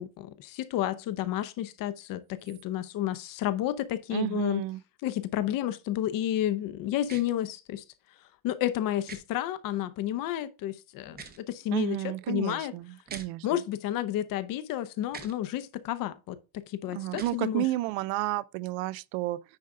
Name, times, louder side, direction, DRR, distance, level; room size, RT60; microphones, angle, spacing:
voice 1, 0.0-4.6 5.0-7.8 8.4-12.7 13.4-17.7, left 12 dB, 45° left, 0.6 m, -31 dB
voice 2, 4.1-4.8 11.7-13.6 16.9-19.4, right 17 dB, 70° right, 0.6 m, -31 dB
sound 1, 7.1-7.2 9.1-9.2 11.1-11.4 13.1-13.3 15.1-15.3 17.1-17.4, right 6 dB, 20° right, 0.7 m, -43 dB
9.7 x 3.8 x 3.6 m
cardioid pair, 175°, 49 cm